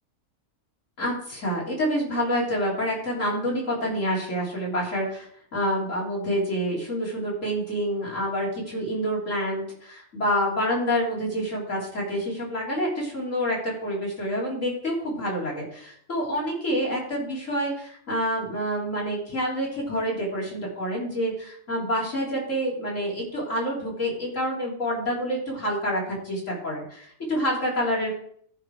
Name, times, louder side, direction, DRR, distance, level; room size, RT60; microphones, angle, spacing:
voice 1, 1.0-28.1, equal, 65° left, -4 dB, 3.9 m, -27 dB
14.0 x 4.8 x 4.8 m, 0.63 s
omnidirectional pair, 1.4 m